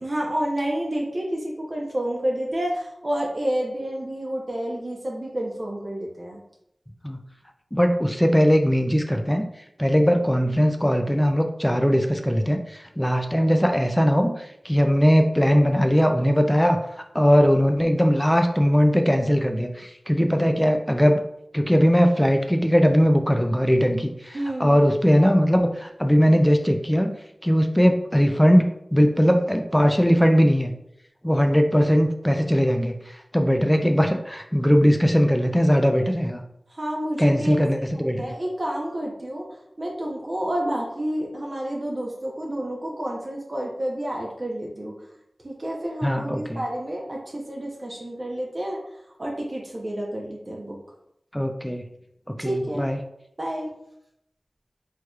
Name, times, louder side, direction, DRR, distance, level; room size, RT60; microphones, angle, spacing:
voice 1, 0.0-6.4 24.3-24.8 36.8-37.5 38.2-39.5 39.8-44.9 45.4-48.8 49.2-50.8 52.4-52.8 53.4-53.7, right 1 dB, 50° right, -2 dB, 0.8 m, -29 dB
voice 2, 7.7-9.4 9.8-16.8 17.1-21.2 21.5-27.1 27.4-30.7 31.2-33.0 33.3-36.4 37.2-38.3 46.0-46.6 51.3-51.8 52.4-53.0, equal, 5° left, 5 dB, 0.4 m, -20 dB
4.6 x 2.9 x 2.3 m, 0.78 s
wide cardioid pair, 50°, 0 cm